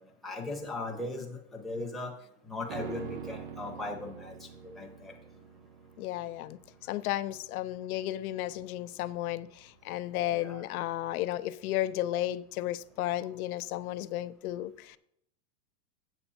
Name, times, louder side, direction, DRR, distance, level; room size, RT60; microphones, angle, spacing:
voice 1, 0.0-2.1 2.5-4.5 4.7-5.1 10.3-10.6, left 2 dB, ahead, 0.8 m, -38 dB
sound 1, 2.7-12.1 12.4-12.5, right 7 dB, 30° right, 0.4 m, -47 dB
voice 2, 6.0-6.6 6.9-15.0, left 14 dB, 70° left, 0.6 m, -33 dB
8.1 x 7.0 x 4.2 m
supercardioid pair, 160°, 46 cm